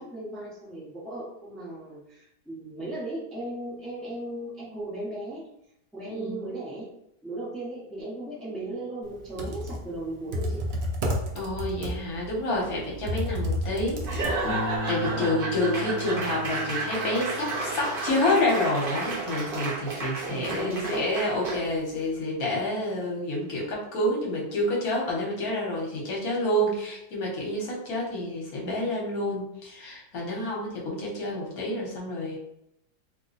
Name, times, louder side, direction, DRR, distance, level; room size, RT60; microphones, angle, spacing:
voice 1, 0.0-5.5 5.9-6.9 7.2-10.6 15.7-16.2 20.3-21.1, right 1 dB, ahead, -6 dB, 0.5 m, -36 dB
voice 2, 6.1-6.4 11.3-14.3 14.9-32.4, left 1 dB, 60° left, -2 dB, 1.4 m, -28 dB
Computer keyboard, 9.2-14.8, equal, 80° right, 0.5 m, -31 dB
Laughter / Applause / Crowd, 14.0-21.8, right 3 dB, 45° right, 0.7 m, -32 dB
sound 1, 14.4-21.0 21.4-21.9, left 2 dB, 40° left, 0.8 m, -38 dB
2.9 x 2.2 x 3.9 m, 0.77 s
omnidirectional pair, 1.8 m